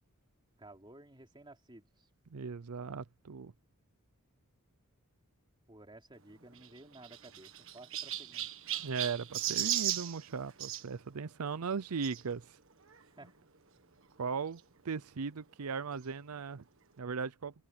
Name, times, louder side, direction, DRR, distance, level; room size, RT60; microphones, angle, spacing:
voice 1, 0.6-2.1 5.7-8.5 13.1-13.4, right 2 dB, 20° right, 3.1 m, -55 dB
voice 2, 2.3-3.5 8.8-12.6 14.2-16.6 17.0-17.5, right 5 dB, 85° right, 0.6 m, -38 dB
Chirp tweet, 6.5-10.8 12.0-12.2 12.9-13.0 13.2-13.3 14.6-14.7, right 12 dB, 60° right, 1.6 m, -36 dB
head